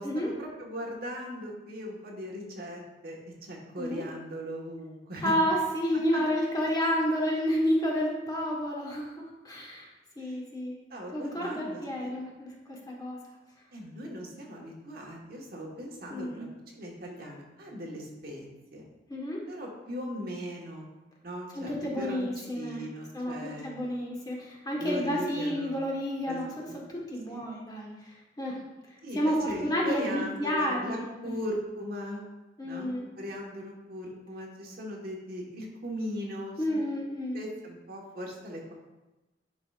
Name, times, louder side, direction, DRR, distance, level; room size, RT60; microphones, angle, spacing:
voice 1, 0.0-5.3 6.1-6.2 10.2-10.3 10.9-12.1 13.7-16.5 16.7-18.8 19.5-20.9 21.2-23.7 24.8-25.8 26.3-26.8 27.3-27.4 29.0-32.2 32.6-36.8 37.3-38.7, equal, 60° right, -1 dB, 1.3 m, -39 dB
voice 2, 5.2-9.9 10.2-10.8 11.1-13.2 16.1-16.5 19.1-19.4 21.5-22.8 23.1-27.9 28.4-28.6 29.1-31.3 32.6-33.1 36.6-37.4, equal, 20° left, -2 dB, 1.3 m, -30 dB
10.5 x 4.8 x 2.4 m, 1.0 s
head